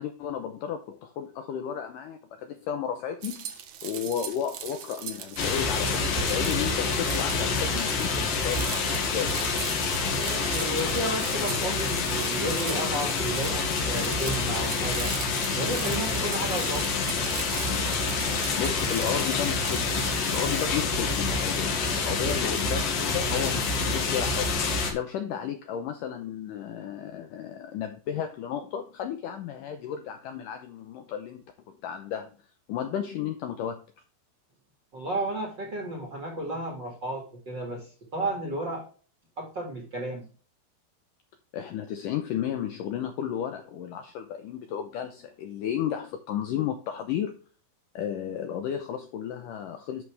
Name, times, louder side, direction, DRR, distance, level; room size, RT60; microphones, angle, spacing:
voice 1, 0.0-3.5 3.8-9.6 18.5-24.5 24.9-32.3 32.7-33.8 41.5-47.4 48.0-50.0, left 9 dB, 85° left, 7 dB, 1.9 m, -33 dB
sound 1, 3.2-20.7, right 9 dB, 70° right, 1.8 m, -40 dB
sound 2, 5.4-24.9, left 4 dB, 60° left, 3.5 m, -27 dB
voice 2, 10.1-15.1 15.5-16.9 34.9-38.9 39.4-40.3, right 1 dB, 40° right, 1 dB, 1.9 m, -33 dB
11.0 x 6.2 x 3.3 m, 0.38 s
omnidirectional pair, 4.8 m